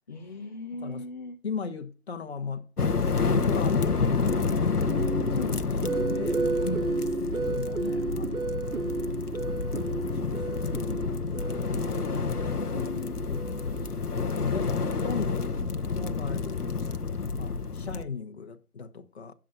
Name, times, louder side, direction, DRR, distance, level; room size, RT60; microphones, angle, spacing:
voice 1, 0.1-1.4 5.3-6.0 12.0-13.2, left 3 dB, 30° left, 0.9 m, -39 dB
voice 2, 1.4-4.6 5.3-5.5 6.1-8.5 9.9-13.5 13.8-14.0 14.2-15.5 15.9-16.7 17.3-19.3, left 5 dB, 45° left, 1.4 m, -38 dB
sound 1, 2.8-18.0, left 4 dB, 80° left, 1.1 m, -29 dB
sound 2, 4.3-14.4, right 3 dB, 70° right, 1.5 m, -33 dB
17.0 x 7.6 x 2.7 m
figure-of-eight pair, 150°, 45 cm